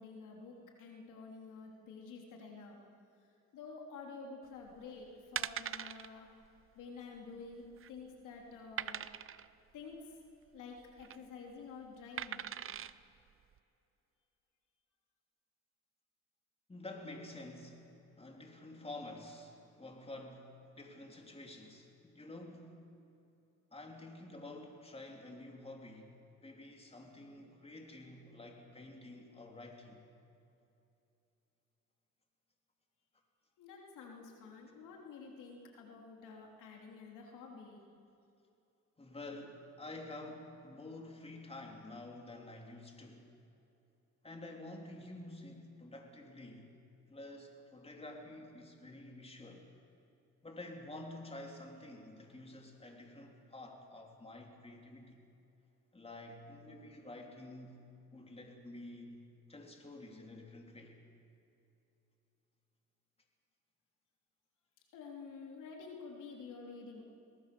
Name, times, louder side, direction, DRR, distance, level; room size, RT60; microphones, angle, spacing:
voice 1, 0.0-2.8 3.2-6.3 6.8-9.1 9.7-10.2 10.5-12.4 33.6-37.8 64.9-67.0, left 4 dB, 90° left, 1 dB, 3.4 m, -50 dB
sound 1, 4.7-4.9 5.4-6.1 6.4-6.6 6.8-6.9 7.5-8.0 8.8-9.5 10.8-11.2 12.2-12.9 13.5-13.6, right 9 dB, 45° right, 0.7 m, -41 dB
voice 2, 16.7-17.8 18.1-22.8 23.7-26.1 26.4-30.0 39.0-43.3 44.2-46.7 47.1-49.7 50.4-55.2 55.9-57.8 58.1-59.2 59.5-60.9, left 2 dB, 20° left, 1 dB, 3.5 m, -49 dB
23.0 x 18.5 x 6.9 m, 2.8 s
cardioid pair, 90°, 30 cm